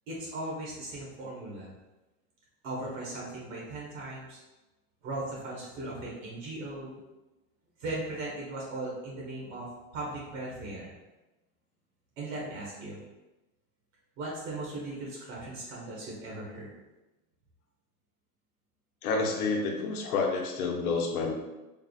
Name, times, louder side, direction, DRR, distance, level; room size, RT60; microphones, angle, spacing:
voice 1, 0.1-1.7 2.6-4.4 5.0-7.0 7.8-10.9 12.2-13.0 14.2-16.7, right 2 dB, 65° right, -4 dB, 1.4 m, -38 dB
voice 2, 19.0-21.3, left 4 dB, 85° left, 2 dB, 0.8 m, -29 dB
3.6 x 2.0 x 4.0 m, 1.1 s
supercardioid pair, 140°, 42 cm